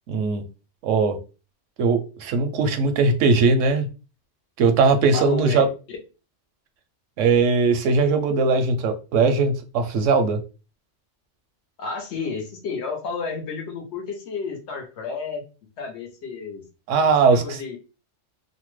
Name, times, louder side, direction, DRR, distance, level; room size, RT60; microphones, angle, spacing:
voice 1, 0.1-0.4 0.8-1.2 1.8-3.9 4.6-5.7 7.2-10.4 16.9-17.6, right 4 dB, 85° right, 0.9 m, -19 dB
voice 2, 5.1-5.7 11.8-15.4 15.8-16.6 17.2-17.8, left 4 dB, 65° left, 1.1 m, -31 dB
2.8 x 2.1 x 3.1 m
omnidirectional pair, 1.3 m